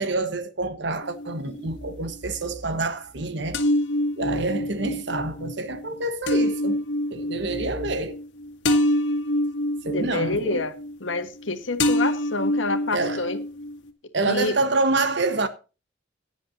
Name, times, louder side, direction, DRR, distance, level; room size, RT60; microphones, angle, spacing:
voice 1, 0.0-3.6 4.2-6.8 7.1-8.2 9.8-10.6 12.9-13.3 14.1-15.5, right 2 dB, 65° right, 1.3 m, -27 dB
sound 1, 1.0-1.9 3.5-11.5 11.8-13.9, left 1 dB, 65° left, 1.9 m, -26 dB
voice 2, 9.9-10.7 11.0-13.4 14.3-14.6, left 3 dB, 90° left, 1.5 m, -27 dB
16.5 x 9.9 x 2.7 m
head